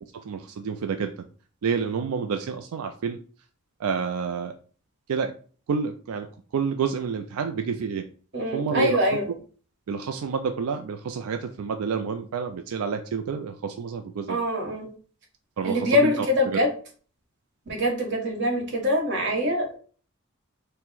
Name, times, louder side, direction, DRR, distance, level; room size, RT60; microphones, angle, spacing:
voice 1, 0.3-1.1 1.6-3.2 3.8-4.5 5.1-5.3 5.7-6.3 6.5-8.1 8.5-9.0 9.9-14.4 15.6-16.6, right 6 dB, 90° right, 7 dB, 0.4 m, -29 dB
voice 2, 8.3-9.3 14.3-14.9 15.6-16.7 17.7-19.8, left 1 dB, 55° right, 1 dB, 1.1 m, -24 dB
4.5 x 2.1 x 3.8 m, 0.41 s
head